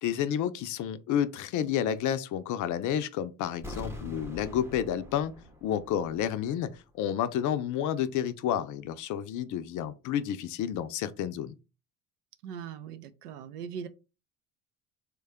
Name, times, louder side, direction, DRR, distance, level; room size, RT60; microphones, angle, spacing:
voice 1, 0.0-5.3 5.6-11.5, left 10 dB, 45° left, 0.5 m, -30 dB
sound 1, 3.6-6.5 6.8-6.9, left 2 dB, 5° right, 0.6 m, -43 dB
voice 2, 12.4-13.9, right 7 dB, 90° right, 0.5 m, -40 dB
3.2 x 2.2 x 3.4 m
hypercardioid pair, 75°, 45 cm